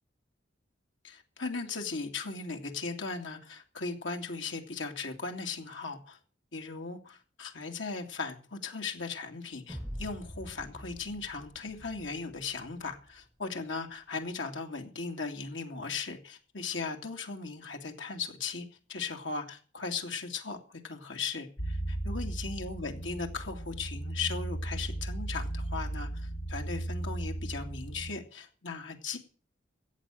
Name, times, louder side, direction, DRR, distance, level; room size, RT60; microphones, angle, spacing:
voice 1, 1.0-6.2 6.5-29.2, left 4 dB, 75° left, 2.5 m, -38 dB
sound 1, 9.7-13.0, equal, 5° right, 5.8 m, -45 dB
sound 2, 21.6-28.1, right 1 dB, 50° left, 1.5 m, -36 dB
14.0 x 8.4 x 7.5 m
head